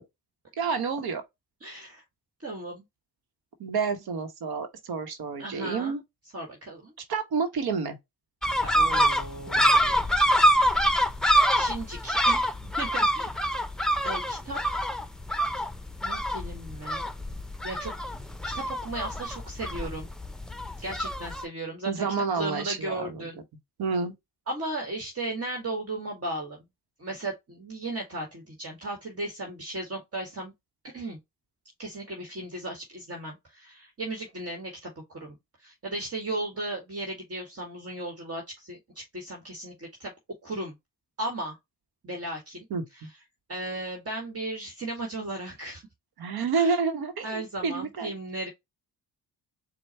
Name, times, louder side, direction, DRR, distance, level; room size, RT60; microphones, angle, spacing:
voice 1, 0.6-1.2 3.6-6.0 7.1-8.0 21.9-23.3 23.8-24.1 42.7-42.8 46.2-48.1, right 5 dB, 70° right, 1.1 m, -29 dB
voice 2, 1.6-2.0 2.4-2.8 5.4-6.0 6.3-6.9 8.6-10.0 10.6-11.0 11.5-13.3 14.0-14.6 16.0-17.1 17.6-17.9 18.5-20.1 20.8-22.1 22.3-23.4 24.5-26.6 27.0-30.5 30.9-31.2 31.8-40.1 40.4-40.7 41.2-41.6 42.0-42.6 42.9-43.1 43.5-45.8 46.6-46.8 47.2-48.5, right 2 dB, 35° right, 1.7 m, -36 dB
sound 1, 8.4-21.4, equal, ahead, 0.7 m, -25 dB
4.5 x 2.4 x 4.2 m
cardioid pair, 70°, 38 cm